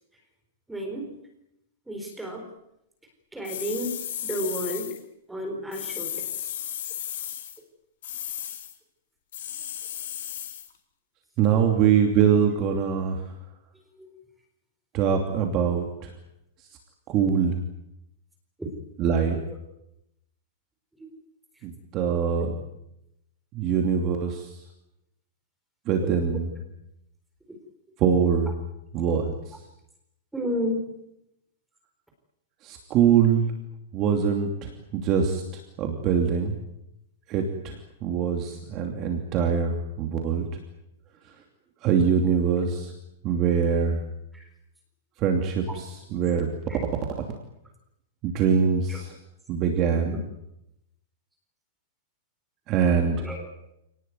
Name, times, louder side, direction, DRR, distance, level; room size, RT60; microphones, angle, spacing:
voice 1, 0.7-1.1 1.9-2.4 3.3-4.0 4.2-4.9 5.3-6.5 14.0-14.1 18.6-18.7 22.4-22.5 26.0-26.1 30.3-30.8 44.3-44.4 46.7-46.8 48.9-49.0 50.1-50.2 53.2-53.5, equal, 5° right, 2 dB, 4.1 m, -32 dB
sound 1, 3.4-5.0 5.7-7.6 8.0-8.7 9.3-10.7, left 10 dB, 60° left, 3.9 m, -34 dB
voice 2, 11.4-13.2 14.9-15.8 17.1-17.6 19.0-19.4 21.6-22.5 23.5-24.5 25.9-26.5 28.0-28.5 28.9-29.3 32.6-33.5 33.9-35.4 35.8-36.6 37.3-40.4 41.8-42.9 43.2-44.0 45.2-46.5 48.2-49.1 49.5-50.1 52.7-53.3, right 7 dB, 25° right, 3 dB, 2.8 m, -23 dB
28.5 x 19.0 x 9.5 m, 0.84 s
supercardioid pair, 180°, 0 cm